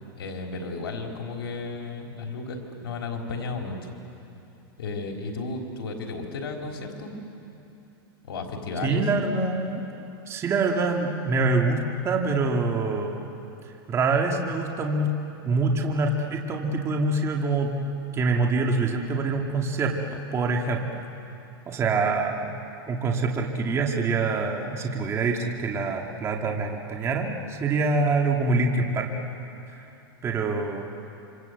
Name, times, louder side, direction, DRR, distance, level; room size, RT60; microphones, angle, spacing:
voice 1, 0.2-3.9 4.8-7.2 8.2-9.1, left 3 dB, 90° left, 1 dB, 4.1 m, -33 dB
voice 2, 8.8-9.8 10.3-13.3 13.9-15.1 15.4-17.8 18.1-20.8 21.7-22.5 22.9-29.1 29.8-29.9 30.2-30.8, right 3 dB, 20° right, 1 dB, 2.2 m, -25 dB
27.0 x 26.5 x 8.1 m, 2.8 s
supercardioid pair, 140°, 13 cm